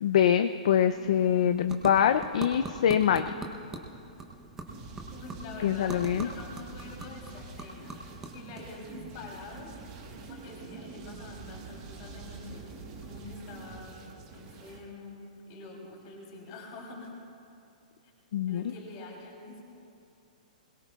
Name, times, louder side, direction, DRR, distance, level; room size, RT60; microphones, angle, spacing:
voice 1, 0.0-3.3 5.6-6.3 18.3-18.7, left 9 dB, 50° left, 9 dB, 0.4 m, -24 dB
sound 1, 0.7-10.2, right 2 dB, 10° right, 0.7 m, -44 dB
sound 2, 4.7-14.8, right 4 dB, 25° right, 1.3 m, -46 dB
voice 2, 5.1-9.8 10.3-12.8 13.0-14.0 14.3-17.1 18.5-19.7, left 3 dB, 30° left, -1 dB, 3.1 m, -46 dB
21.5 x 21.0 x 2.3 m, 2.6 s
hypercardioid pair, 175°, 4 cm